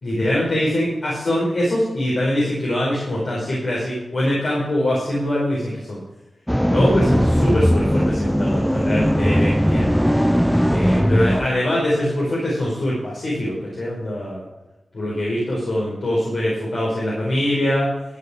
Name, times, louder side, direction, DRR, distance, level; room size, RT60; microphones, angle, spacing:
voice 1, 0.0-6.0 6.7-9.9 10.7-14.4 14.9-17.9, left 1 dB, 65° left, -5 dB, 4.6 m, -23 dB
sound 1, 6.5-11.5, equal, ahead, 0.5 m, -18 dB
13.5 x 8.7 x 5.0 m, 1.0 s
wide cardioid pair, 115°, 0 cm